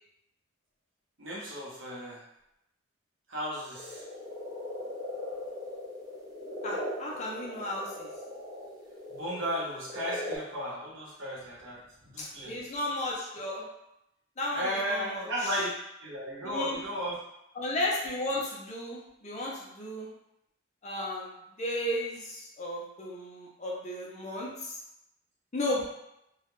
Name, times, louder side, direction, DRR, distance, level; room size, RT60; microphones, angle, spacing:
voice 1, 1.2-2.2 3.3-4.0 9.1-12.6 14.5-15.7 16.0-17.2, equal, 65° right, -4 dB, 0.8 m, -34 dB
sound 1, 3.7-10.3, left 1 dB, 20° right, 0.6 m, -39 dB
voice 2, 6.6-8.1 12.2-13.7 14.4-15.6 16.4-16.8 17.6-20.1 20.8-24.8 25.5-25.9, left 1 dB, 35° left, -3 dB, 0.5 m, -34 dB
2.3 x 2.0 x 2.9 m, 0.84 s
head